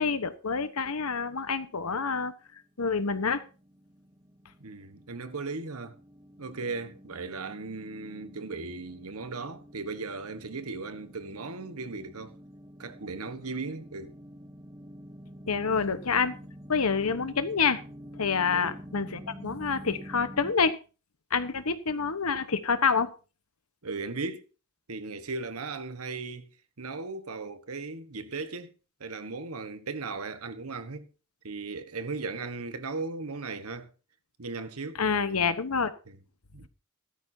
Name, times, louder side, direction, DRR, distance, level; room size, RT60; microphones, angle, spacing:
voice 1, 0.0-3.4 15.5-16.3 16.7-17.8 18.2-20.8 21.3-23.1 34.9-35.9, left 5 dB, 90° left, 1.2 m, -27 dB
sound 1, 2.7-2.8 2.9-20.5, equal, 15° right, 1.1 m, -48 dB
voice 2, 4.6-6.0 6.4-12.4 12.8-14.1 18.5-18.8 23.8-24.4 24.9-26.5 26.8-28.7 29.0-31.1 31.4-33.9 34.4-35.0 36.5-36.7, right 3 dB, 90° right, 1.3 m, -37 dB
15.5 x 13.0 x 2.8 m
head